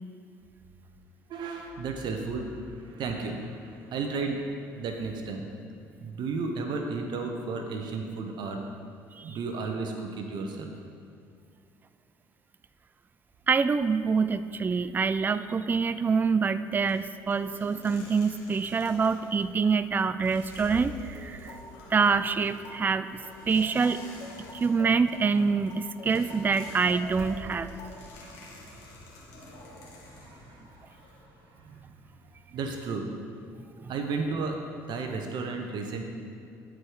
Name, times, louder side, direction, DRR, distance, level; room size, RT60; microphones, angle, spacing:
voice 1, 1.3-4.4 4.8-5.4 6.0-8.6 9.2-10.7 30.2-30.9 31.6-31.8 32.5-33.1 33.9-34.6 34.9-36.0, right 4 dB, 60° right, 3 dB, 0.9 m, -33 dB
voice 2, 13.5-21.6 21.9-23.1 23.5-24.1 24.5-27.7 33.8-33.9, right 5 dB, 20° right, 14 dB, 0.3 m, -26 dB
sound 1, 16.9-31.9, left 1 dB, 85° left, 2.0 m, -48 dB
sound 2, 20.6-28.1, left 2 dB, 50° left, 2.4 m, -47 dB
11.5 x 5.0 x 4.7 m, 2.5 s
supercardioid pair, 75°, 8 cm